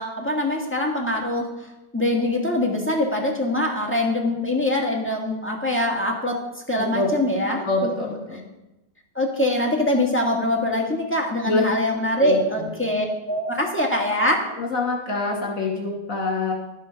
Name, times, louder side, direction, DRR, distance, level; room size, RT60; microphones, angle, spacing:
voice 1, 0.0-1.5 1.9-6.4 6.7-8.1 9.1-14.5, left 1 dB, 5° left, 0 dB, 1.5 m, -23 dB
voice 2, 6.8-7.1 7.6-8.4 11.5-11.6 12.2-12.4 14.6-16.5, left 2 dB, 50° left, -1 dB, 2.8 m, -25 dB
13.0 x 6.3 x 5.7 m, 0.96 s
omnidirectional pair, 1.9 m